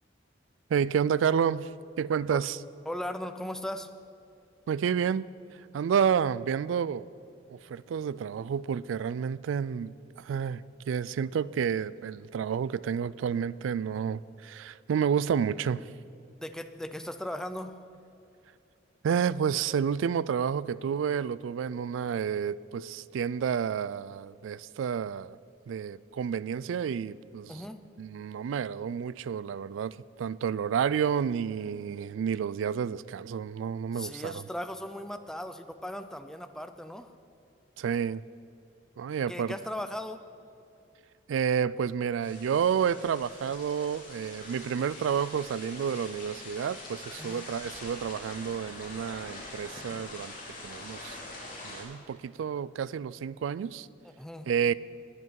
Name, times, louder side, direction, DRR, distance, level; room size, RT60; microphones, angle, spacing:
voice 1, 0.7-1.7 2.0-2.6 4.7-5.3 5.7-7.1 7.5-9.9 10.2-15.9 19.0-25.4 25.7-27.7 28.0-34.4 37.8-38.2 39.0-39.5 41.3-50.3 50.6-51.2 51.6-53.9 54.5-54.7, right 7 dB, 85° right, 20 dB, 0.3 m, -30 dB
voice 2, 2.9-3.9 16.4-17.8 27.5-27.8 33.9-37.1 39.3-40.2 47.2-47.5 54.0-54.5, left 1 dB, 5° left, 9 dB, 0.5 m, -38 dB
sound 1, 42.2-51.8, left 2 dB, 45° left, 3.8 m, -44 dB
20.0 x 7.9 x 4.7 m, 2.6 s
head